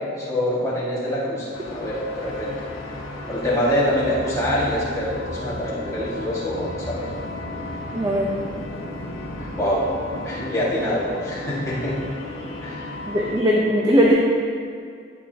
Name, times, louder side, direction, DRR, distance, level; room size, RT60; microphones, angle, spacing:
voice 1, 0.0-2.5 3.3-7.1 9.4-9.8 10.2-11.9 12.6-12.9, equal, 15° left, -8 dB, 1.9 m, -25 dB
sound 1, 1.5-13.4, left 1 dB, 85° left, 1.2 m, -34 dB
voice 2, 7.9-8.3 13.1-14.1, equal, 20° right, -3 dB, 0.7 m, -19 dB
12.0 x 8.1 x 2.9 m, 2.2 s
head